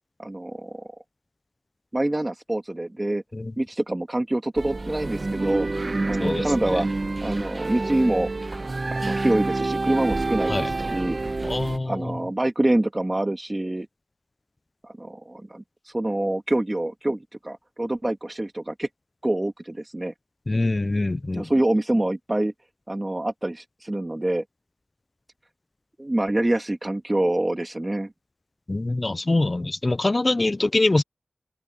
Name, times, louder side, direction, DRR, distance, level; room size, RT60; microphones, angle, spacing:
voice 1, 0.2-0.9 1.9-3.2 3.6-6.9 7.2-8.3 8.9-11.2 11.8-13.9 14.8-18.9 19.2-20.1 21.3-22.5 22.9-24.4 26.0-28.1, right 1 dB, 25° right, 2.7 m, -26 dB
sound 1, 4.6-11.8, right 2 dB, 50° right, 1.1 m, -28 dB
voice 2, 11.4-11.9 20.5-21.5 28.7-31.0, left 2 dB, 40° left, 0.3 m, -23 dB
cardioid pair, 45°, 0 cm